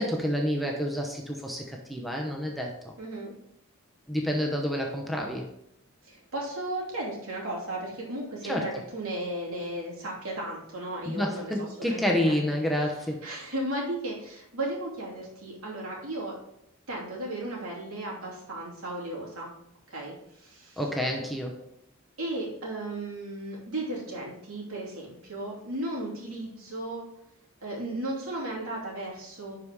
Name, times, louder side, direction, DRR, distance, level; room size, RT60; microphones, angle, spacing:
voice 1, 0.0-2.9 4.1-5.5 8.5-8.8 11.1-13.2 20.8-21.7, equal, ahead, 0 dB, 0.7 m, -29 dB
voice 2, 3.0-3.3 6.0-12.4 13.2-16.3 16.9-19.5 19.9-20.8 22.2-27.1 27.6-29.6, right 1 dB, 75° right, -3 dB, 2.8 m, -35 dB
11.0 x 4.8 x 3.5 m, 0.77 s
head